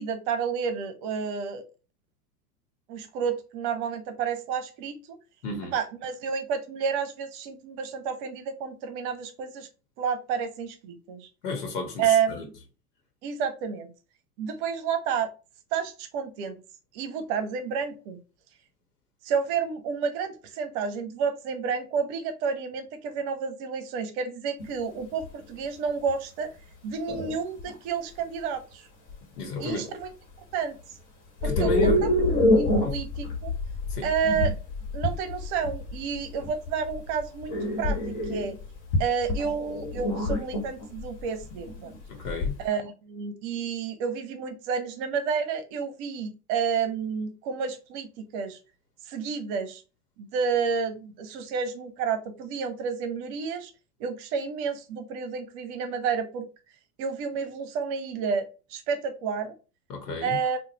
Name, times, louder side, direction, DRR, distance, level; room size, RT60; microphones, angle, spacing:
voice 1, 0.0-1.6 2.9-5.2 5.7-9.7 10.0-11.3 12.0-12.5 13.2-13.9 14.4-15.3 15.7-16.6 16.9-18.2 19.2-26.5 26.8-28.9 29.6-30.1 30.5-30.8 31.4-32.1 32.6-33.5 34.0-34.5 34.9-38.6 39.0-42.0 42.6-48.6 49.1-49.8 50.2-53.7 54.0-56.5 57.0-59.5 60.2-60.6, right 6 dB, 45° right, 0.8 m, -30 dB
voice 2, 5.4-5.7 11.4-12.4 29.4-29.8 31.4-32.0 32.6-33.0 33.9-34.1 42.1-42.6 59.9-60.4, left 4 dB, 80° left, 1.2 m, -32 dB
sound 1, 24.6-24.7 25.2-25.4 26.1-26.2 27.1-27.7 29.1-29.2 29.6-29.9 31.4-42.6, left 1 dB, 40° left, 1.6 m, -27 dB
3.9 x 2.4 x 2.9 m
hypercardioid pair, 105°, 46 cm